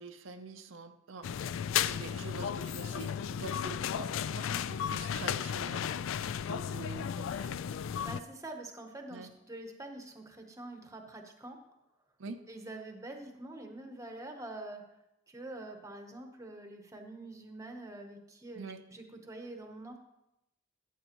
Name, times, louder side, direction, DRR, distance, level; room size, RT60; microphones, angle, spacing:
voice 1, 0.0-5.9 6.4-7.6 9.1-9.3 12.2-12.4 18.5-18.8, right 3 dB, 75° right, 7 dB, 0.6 m, -46 dB
sound 1, 1.2-8.2, left 8 dB, 75° left, 0.3 m, -34 dB
voice 2, 8.0-11.6 12.5-14.8 15.3-20.0, right 2 dB, 15° right, 4 dB, 0.9 m, -45 dB
14.0 x 8.1 x 3.0 m, 0.89 s
head